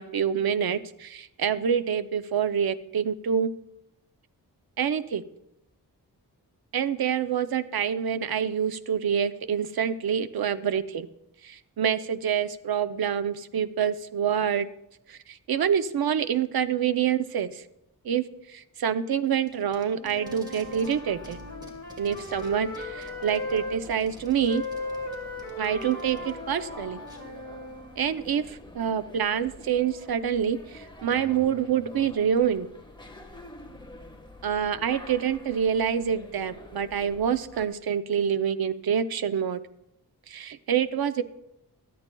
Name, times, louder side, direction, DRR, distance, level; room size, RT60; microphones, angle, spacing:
voice 1, 0.0-3.5 4.8-5.2 6.7-11.1 11.4-14.7 15.1-17.6 18.0-21.4 22.0-24.6 25.6-27.0 28.0-32.7 34.4-39.6 40.3-41.2, right 8 dB, 70° right, 12 dB, 0.6 m, -27 dB
Packing tape duct tape, 19.2-21.0 21.2-26.3 27.1-27.2, right 1 dB, 10° right, 2.0 m, -52 dB
Wind instrument woodwind instrument, 19.8-23.8 24.5-28.0, left 2 dB, 45° left, 2.5 m, -37 dB
sound 1, 20.6-37.7, left 1 dB, 10° left, 1.4 m, -47 dB
24.0 x 8.5 x 2.3 m, 0.86 s
wide cardioid pair, 100°, 38 cm